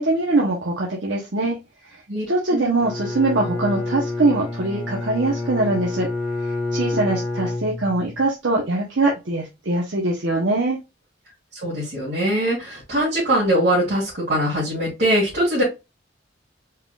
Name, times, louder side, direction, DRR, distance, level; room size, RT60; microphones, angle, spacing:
voice 1, 0.0-1.6 2.3-6.1 6.7-10.8, right 2 dB, 75° right, -3 dB, 1.0 m, -22 dB
Bowed string instrument, 2.8-8.2, left 2 dB, 10° right, 1.7 m, -28 dB
voice 2, 11.5-15.6, right 1 dB, 55° right, -7 dB, 2.4 m, -22 dB
4.5 x 3.7 x 2.3 m, 0.24 s
head